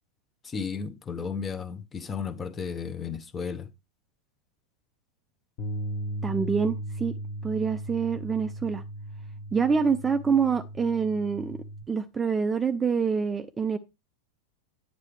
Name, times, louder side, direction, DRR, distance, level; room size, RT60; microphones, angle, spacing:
voice 1, 0.5-3.7, left 6 dB, 20° left, 0.8 m, -34 dB
Bass guitar, 5.6-11.8, right 1 dB, 35° left, 1.3 m, -37 dB
voice 2, 6.2-7.2 7.4-8.8 9.5-11.6 11.9-13.8, right 5 dB, 15° right, 0.5 m, -26 dB
9.8 x 6.6 x 3.2 m
figure-of-eight pair, 90°, 0 cm